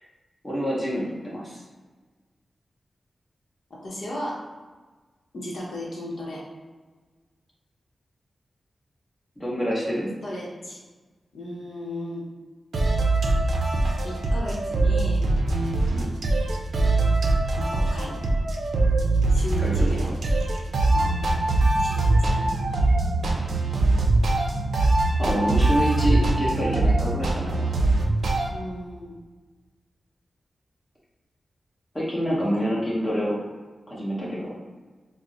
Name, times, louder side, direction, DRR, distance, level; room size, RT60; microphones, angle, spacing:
voice 1, 0.4-1.6 9.4-10.1 15.9-16.1 19.6-20.1 25.2-27.7 31.9-33.4 33.9-34.5, equal, 15° left, -6 dB, 1.2 m, -27 dB
voice 2, 3.8-4.4 5.3-6.4 10.2-10.8 11.3-12.2 14.0-15.2 17.5-18.2 19.3-20.1 20.9-21.1 21.8-22.6 28.5-29.2 32.3-32.6 34.2-34.4, left 1 dB, 70° left, -5 dB, 0.8 m, -35 dB
sound 1, 12.7-28.5, right 2 dB, 85° right, 0.4 m, -22 dB
4.3 x 2.0 x 2.6 m, 1.3 s
cardioid pair, 70°, 0 cm